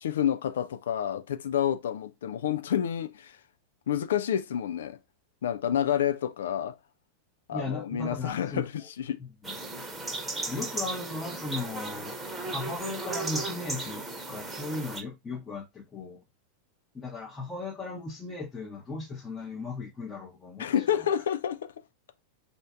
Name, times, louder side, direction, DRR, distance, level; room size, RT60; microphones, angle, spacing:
voice 1, 0.0-3.4 3.9-5.0 5.4-6.8 7.5-9.2 20.6-21.7, left 9 dB, 60° left, 0.4 m, -29 dB
voice 2, 7.5-8.6 9.2-9.6 10.5-12.2 12.5-16.2 16.9-21.1, left 3 dB, 15° left, 1.0 m, -37 dB
sound 1, 9.4-15.0, right 3 dB, 15° right, 1.0 m, -35 dB
4.3 x 2.7 x 3.4 m
figure-of-eight pair, 90°, 0 cm